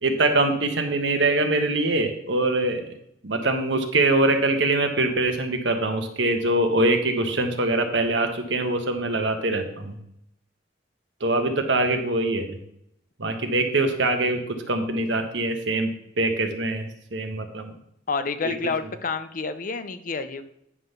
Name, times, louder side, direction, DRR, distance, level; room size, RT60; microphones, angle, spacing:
voice 1, 0.0-2.9 3.2-9.9 11.2-12.6 13.2-15.9 16.2-17.7 18.4-18.5, right 2 dB, 70° right, 5 dB, 1.2 m, -23 dB
voice 2, 18.1-20.4, left 4 dB, 45° left, 10 dB, 0.6 m, -29 dB
9.6 x 3.8 x 6.6 m, 0.75 s
head